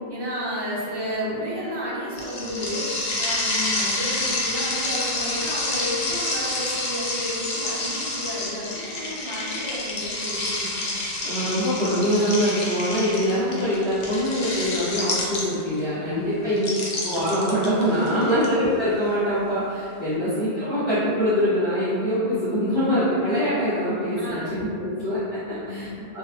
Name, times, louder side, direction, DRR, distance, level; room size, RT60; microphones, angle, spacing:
voice 1, 0.1-10.9 16.0-16.5 18.0-18.3 24.2-24.9 25.4-26.0, equal, 30° right, -7 dB, 0.5 m, -32 dB
sound 1, 2.2-15.8 16.6-18.5, left 2 dB, 55° left, 0.7 m, -28 dB
voice 2, 11.2-16.7 17.0-25.9 26.1-26.2, equal, 20° left, -18 dB, 1.4 m, -24 dB
3.0 x 2.1 x 3.0 m, 2.3 s
omnidirectional pair, 1.1 m